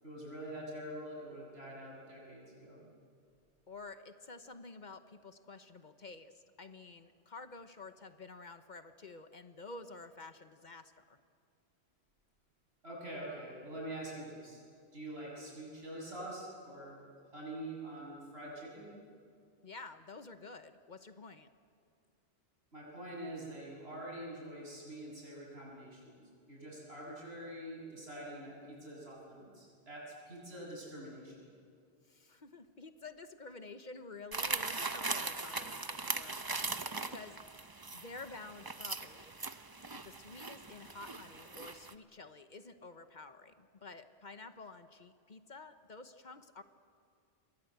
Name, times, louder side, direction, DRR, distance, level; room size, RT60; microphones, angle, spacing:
voice 1, 0.0-2.8 12.8-14.6 14.9-17.0 17.3-18.9 22.7-26.2 26.5-31.3, right 1 dB, 75° right, -3 dB, 8.3 m, -45 dB
voice 2, 3.7-11.2 19.6-21.5 32.0-37.4 37.9-39.3 39.9-46.6, left 3 dB, 50° left, 10 dB, 1.1 m, -50 dB
sound 1, 34.3-41.9, right 3 dB, 25° right, 0.8 m, -40 dB
28.0 x 22.5 x 8.0 m, 2.2 s
omnidirectional pair, 1.1 m